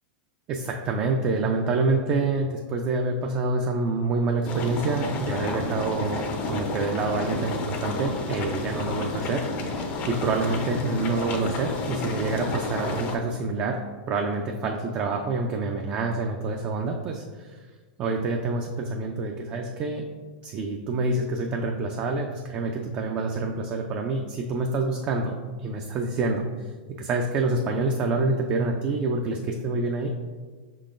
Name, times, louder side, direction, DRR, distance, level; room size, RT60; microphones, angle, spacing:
voice 1, 0.5-17.6 18.0-20.1 20.4-25.3 25.6-26.5 26.9-30.1, right 3 dB, 30° right, 2 dB, 0.3 m, -27 dB
sound 1, 4.4-13.2, left 2 dB, 35° left, 0.5 m, -31 dB
4.9 x 3.8 x 2.5 m, 1.4 s
supercardioid pair, 140°, 5 cm